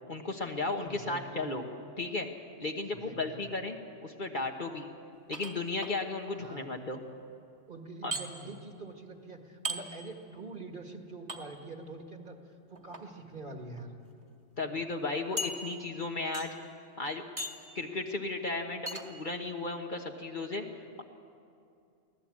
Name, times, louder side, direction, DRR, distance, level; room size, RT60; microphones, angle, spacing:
voice 1, 0.1-1.7 2.0-2.3 2.6-4.9 5.3-7.0 8.0-8.1 14.6-16.5 17.0-17.2 17.7-20.7, left 3 dB, 40° left, 3 dB, 1.4 m, -35 dB
voice 2, 0.8-1.5 2.8-3.4 6.4-6.7 7.7-12.4 12.7-14.0, right 2 dB, 40° right, 3 dB, 2.0 m, -45 dB
sound 1, 5.3-5.9 8.1-8.2 9.6-9.8 11.3-11.4 12.7-13.0 13.8-13.9 14.2-14.3 15.4-16.0 16.3-16.7 17.4-17.7 18.9-19.1, right 1 dB, 25° right, 1.8 m, -37 dB
24.0 x 17.0 x 8.6 m, 2.4 s
omnidirectional pair, 1.3 m